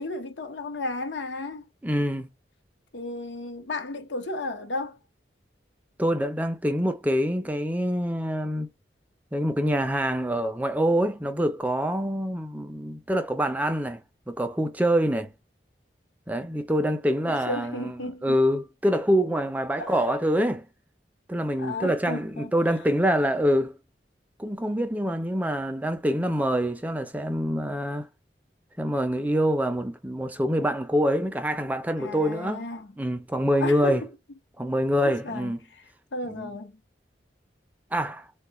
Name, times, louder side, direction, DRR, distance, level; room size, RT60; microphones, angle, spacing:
voice 1, 0.0-1.7 2.9-5.0 17.2-18.4 19.8-20.1 21.6-22.5 32.0-32.9 33.6-34.1 35.0-36.7, left 2 dB, 85° left, 0.8 m, -34 dB
voice 2, 1.8-2.3 6.0-8.7 9.3-14.0 14.3-15.3 16.3-17.9 18.2-20.7 21.3-23.8 24.4-28.1 28.8-32.7 33.0-34.0 34.6-35.6 36.4-36.5 37.9-38.3, equal, 10° right, 0.4 m, -25 dB
3.7 x 2.3 x 2.9 m
head